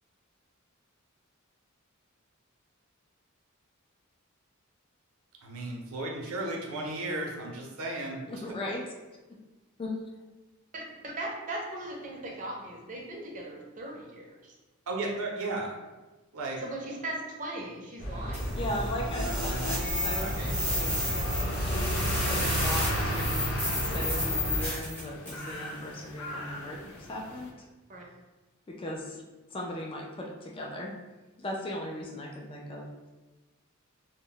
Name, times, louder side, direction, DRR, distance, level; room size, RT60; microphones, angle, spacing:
voice 1, 5.4-8.2 14.9-15.7 16.3-16.6 19.2-19.8 20.1-20.6, right 2 dB, 85° right, 0 dB, 0.6 m, -35 dB
voice 2, 8.3-8.8 9.8-9.9 18.5-21.1 21.6-21.9 22.2-23.4 23.9-27.5 28.7-29.2 29.5-30.9 31.4-32.9, left 1 dB, 25° left, 0 dB, 0.3 m, -37 dB
voice 3, 10.7-14.6 16.6-18.5 27.9-28.0, right 2 dB, 40° right, 0 dB, 0.5 m, -38 dB
sound 1, 18.0-24.7, equal, 50° left, 0.7 m, -31 dB
sound 2, 18.3-25.5, left 1 dB, 10° left, 0.8 m, -33 dB
sound 3, 20.2-27.5, left 1 dB, 85° left, 0.5 m, -45 dB
2.1 x 2.0 x 3.7 m, 1.1 s
head